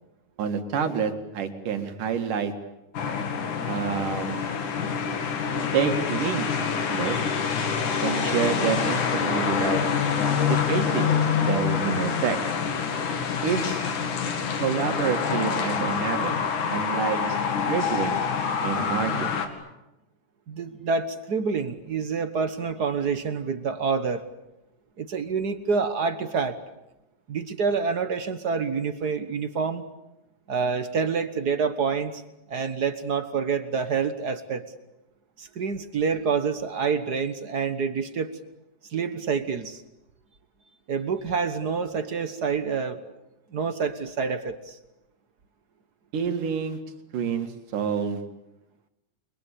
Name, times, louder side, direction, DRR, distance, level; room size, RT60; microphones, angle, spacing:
voice 1, 0.4-2.5 3.7-4.4 5.7-6.5 6.9-7.2 8.0-9.8 10.5-11.1 11.4-12.4 13.4-13.8 14.6-16.3 16.7-17.4 17.7-18.2 18.6-19.4 46.1-46.8 47.1-48.2, right 7 dB, 80° right, 6 dB, 3.7 m, -28 dB
sound 1, 2.9-19.5, left 6 dB, 70° left, 3.7 m, -26 dB
voice 2, 20.5-24.2 25.0-26.6 27.3-29.8 30.5-32.2 32.5-34.6 35.4-38.4 38.9-39.8 40.9-43.0 43.5-44.8, right 5 dB, 55° right, 10 dB, 1.1 m, -27 dB
30.0 x 23.5 x 8.5 m, 0.94 s
omnidirectional pair, 3.6 m